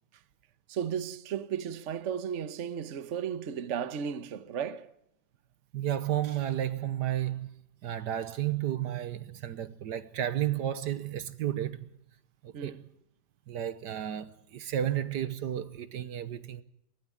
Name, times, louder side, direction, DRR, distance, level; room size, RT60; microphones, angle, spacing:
voice 1, 0.7-4.9 12.5-12.8, right 8 dB, 45° right, 1.2 m, -35 dB
voice 2, 5.7-7.5 7.8-11.9 12.4-12.8 13.5-16.6, right 11 dB, 75° right, 1.5 m, -32 dB
22.5 x 16.5 x 7.5 m
omnidirectional pair, 1.9 m